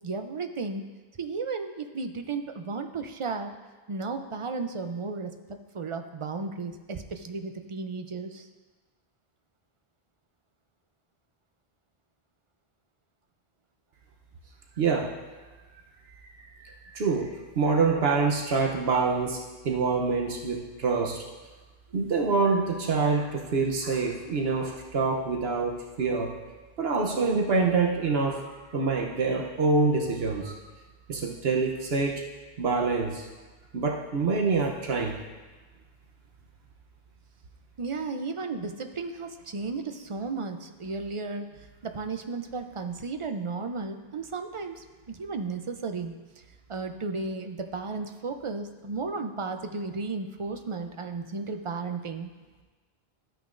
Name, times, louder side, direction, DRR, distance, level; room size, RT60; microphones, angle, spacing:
voice 1, 0.0-0.8 1.2-3.5 3.9-8.5 37.8-41.5 41.8-46.1 46.7-52.3, right 4 dB, 40° right, 7 dB, 0.5 m, -34 dB
voice 2, 14.8-15.1 16.6-17.3 17.5-19.4 19.6-21.2 21.9-26.3 26.8-28.4 28.7-30.6 31.1-32.2 32.6-33.3 33.7-35.2, right 4 dB, 80° right, 0 dB, 1.1 m, -26 dB
12.5 x 9.1 x 2.5 m, 1.3 s
omnidirectional pair, 1.0 m